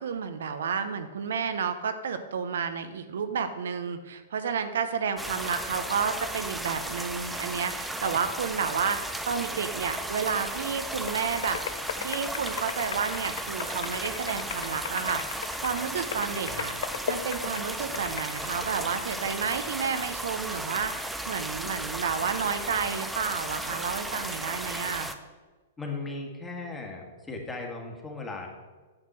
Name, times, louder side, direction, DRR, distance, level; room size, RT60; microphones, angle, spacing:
voice 1, 0.0-11.6 12.0-16.7 17.1-25.1, right 6 dB, 75° right, 9 dB, 0.7 m, -31 dB
sound 1, 5.2-25.1, right 1 dB, 5° right, 0.6 m, -35 dB
sound 2, 11.1-18.3, left 9 dB, 70° left, 0.3 m, -38 dB
voice 2, 25.8-28.5, left 3 dB, 15° left, 0 dB, 1.7 m, -37 dB
8.8 x 6.0 x 4.4 m, 1.3 s
hypercardioid pair, 115°, 0 cm